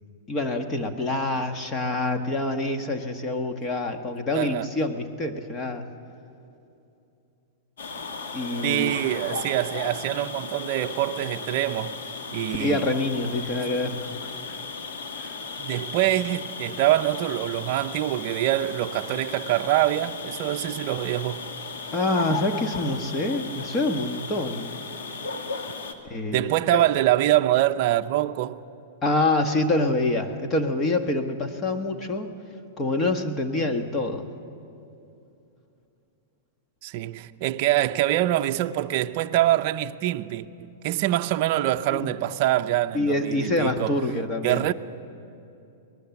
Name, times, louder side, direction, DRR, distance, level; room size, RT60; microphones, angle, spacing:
voice 1, 0.3-5.8 8.3-9.0 12.6-14.6 15.2-15.4 21.9-24.8 26.0-26.8 29.0-32.3 32.8-34.3 41.9-42.1 42.9-44.7, left 2 dB, 20° left, 1.3 m, -26 dB
voice 2, 4.3-4.7 8.6-12.0 12.3-12.8 15.6-21.5 26.3-28.6 36.8-44.0 44.4-44.7, right 14 dB, 45° right, 0.6 m, -24 dB
sound 1, 7.8-25.9, left 4 dB, 85° left, 1.9 m, -36 dB
24.0 x 19.5 x 7.1 m
supercardioid pair, 155°, 0 cm